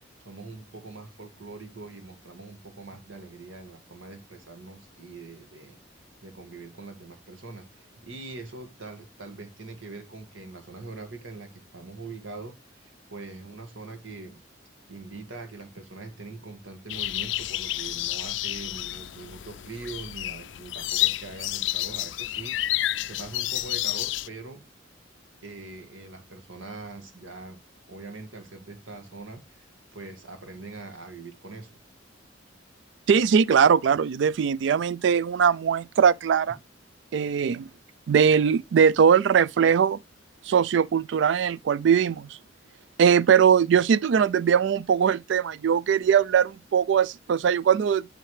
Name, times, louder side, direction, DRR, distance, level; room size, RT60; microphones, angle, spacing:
voice 1, 0.2-5.8 6.2-14.4 14.9-24.6 25.4-27.6 27.9-31.7, right 3 dB, 85° right, 1.8 m, -42 dB
sound 1, 16.9-24.3, left 15 dB, 70° left, 0.4 m, -30 dB
voice 2, 33.1-36.6 37.1-37.7 38.1-40.0 40.5-42.3 43.0-48.1, right 7 dB, 65° right, 0.3 m, -21 dB
11.0 x 3.7 x 3.2 m
head